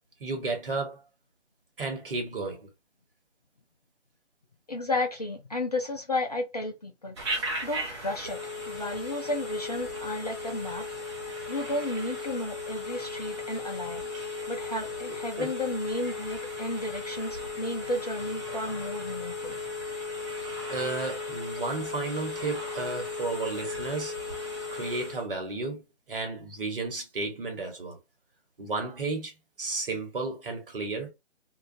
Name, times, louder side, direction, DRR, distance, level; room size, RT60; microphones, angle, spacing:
voice 1, 0.2-1.0 1.8-2.7 15.3-15.5 20.7-24.1 24.7-25.8 26.1-28.0 28.6-29.3 29.6-31.1, right 3 dB, 50° right, 1.0 m, -33 dB
voice 2, 4.7-7.2 7.6-10.9 11.5-14.0 14.5-19.6, left 2 dB, 35° left, 0.4 m, -33 dB
Telephone, 7.2-25.3, left 2 dB, 25° right, 0.6 m, -36 dB
2.3 x 2.2 x 2.6 m
figure-of-eight pair, 145°, 35 cm